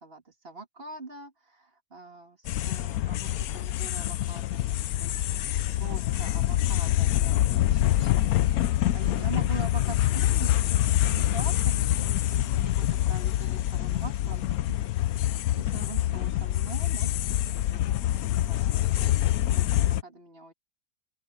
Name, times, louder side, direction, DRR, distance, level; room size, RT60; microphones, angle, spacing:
voice 1, 0.0-5.1 5.8-8.1 8.5-14.4 15.1-17.4 17.7-18.7 19.0-19.1 19.6-20.5, right 3 dB, 40° right, 2.9 m, -43 dB
sound 1, 2.4-20.0, left 13 dB, 85° left, 1.1 m, -26 dB
open air
omnidirectional pair, 1.5 m